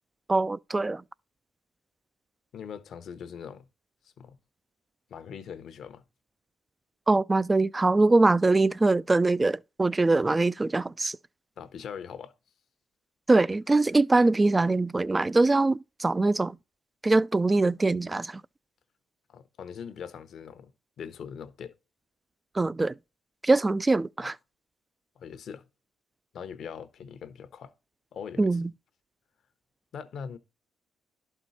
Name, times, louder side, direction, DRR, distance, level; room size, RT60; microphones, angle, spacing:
voice 1, 0.3-1.0 7.1-11.2 13.3-16.5 17.0-18.4 22.6-22.9 23.4-24.3 28.4-28.7, right 2 dB, 20° right, 0.3 m, -23 dB
voice 2, 2.5-3.7 4.2-4.4 5.1-6.0 11.6-12.3 19.3-20.7 21.0-21.8 24.2-24.3 25.2-25.7 26.3-27.7 28.1-28.6 29.9-30.4, left 7 dB, 65° left, 0.9 m, -41 dB
11.5 x 4.5 x 4.1 m
cardioid pair, 90°, 0 cm